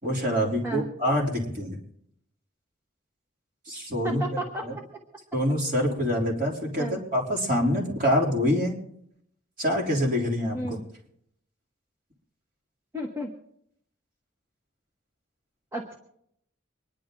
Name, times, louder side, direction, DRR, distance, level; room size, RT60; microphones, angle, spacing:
voice 1, 0.0-1.8 3.7-4.7 5.3-8.8 9.6-10.8, equal, 45° right, -2 dB, 3.2 m, -26 dB
voice 2, 4.0-4.7 6.8-7.0 10.5-10.8 12.9-13.3 15.7-16.0, right 1 dB, 15° right, 1 dB, 1.2 m, -32 dB
25.0 x 10.5 x 3.8 m, 0.73 s
head